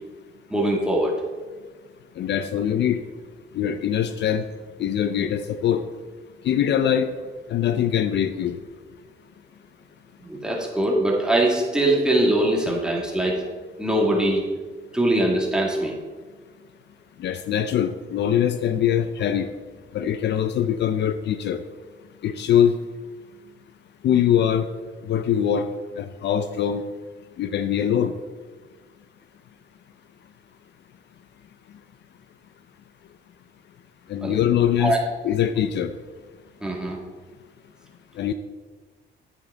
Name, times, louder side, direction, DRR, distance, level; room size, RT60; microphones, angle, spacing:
voice 1, 0.5-1.1 10.2-13.4 13.8-14.4 14.9-15.9 34.2-34.4 34.8-35.0 36.6-37.0, right 1 dB, 5° right, -2 dB, 2.2 m, -22 dB
voice 2, 2.2-3.0 3.5-4.5 4.8-5.8 6.4-7.1 7.5-8.5 17.2-19.5 19.9-21.6 22.2-22.8 24.0-24.7 25.1-25.7 26.0-26.8 27.4-28.1 34.1-35.0 35.2-35.9 38.2-38.3, left 9 dB, 60° left, 10 dB, 0.5 m, -22 dB
8.9 x 8.3 x 3.9 m, 1.4 s
cardioid pair, 90°, 20 cm